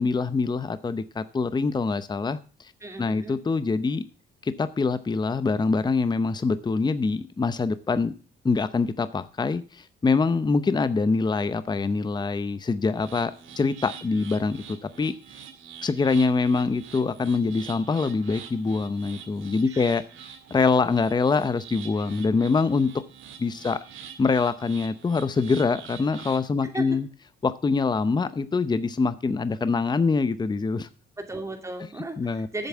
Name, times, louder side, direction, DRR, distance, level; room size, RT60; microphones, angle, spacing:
voice 1, 0.0-2.7 3.0-4.0 4.4-8.1 8.4-13.3 13.6-15.1 15.8-20.0 20.5-22.9 23.4-23.8 24.2-27.1 27.4-30.9 32.2-32.7, left 4 dB, 20° left, 14 dB, 0.7 m, -24 dB
voice 2, 2.8-3.4 19.7-19.8 26.6-27.0 31.2-32.7, right 2 dB, 15° right, 4 dB, 2.4 m, -36 dB
sound 1, 12.9-26.5, right 8 dB, 80° right, 2.0 m, -45 dB
8.0 x 7.1 x 7.2 m, 0.38 s
cardioid pair, 90°, 20 cm